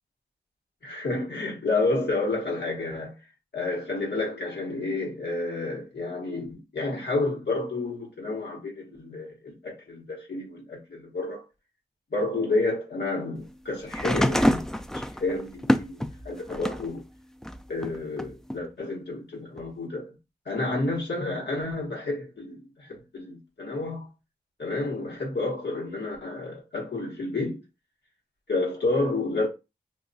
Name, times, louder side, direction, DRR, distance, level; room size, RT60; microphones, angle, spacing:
voice 1, 0.8-3.2 3.5-11.4 12.1-14.7 14.9-17.0 17.7-20.2 20.4-24.1 24.6-27.6 28.5-29.5, left 2 dB, 75° left, 1.1 m, -30 dB
sound 1, 13.9-16.9 17.4-18.6 19.6-19.7, equal, 5° left, 0.3 m, -26 dB
2.3 x 2.2 x 3.9 m
cardioid pair, 55°, 17 cm